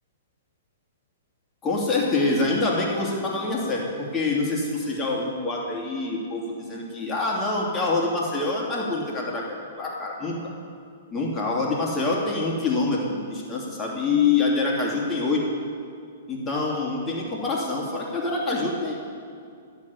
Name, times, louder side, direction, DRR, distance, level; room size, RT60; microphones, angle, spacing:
voice 1, 1.6-10.5 11.1-15.5 16.3-18.9, left 3 dB, 20° left, -3 dB, 2.9 m, -26 dB
11.0 x 7.6 x 9.5 m, 2.4 s
figure-of-eight pair, 110°, 0 cm